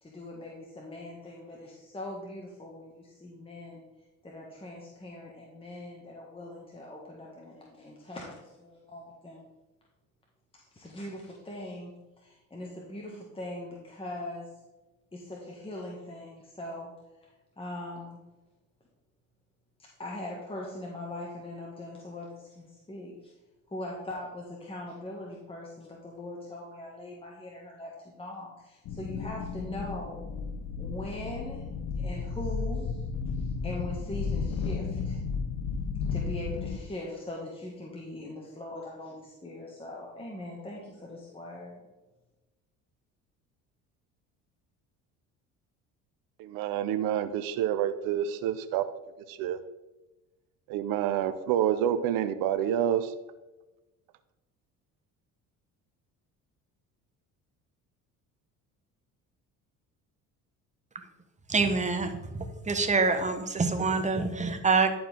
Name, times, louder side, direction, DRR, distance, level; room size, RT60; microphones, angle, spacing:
voice 1, 0.0-3.8 4.2-9.4 10.5-14.5 15.1-16.9 17.6-18.2 20.0-23.3 23.7-30.3 30.8-31.7 32.0-33.0 33.3-35.2 36.1-41.8, left 1 dB, 15° left, -3 dB, 1.7 m, -41 dB
sound 1, 28.9-36.8, left 5 dB, 60° left, 0.8 m, -33 dB
voice 2, 46.4-48.8 49.3-49.6 50.7-53.1, right 10 dB, 80° right, 11 dB, 0.7 m, -28 dB
voice 3, 61.5-62.1 62.7-64.9, right 4 dB, 20° right, 7 dB, 1.2 m, -25 dB
11.0 x 4.7 x 3.7 m, 1.0 s
supercardioid pair, 90°, 34 cm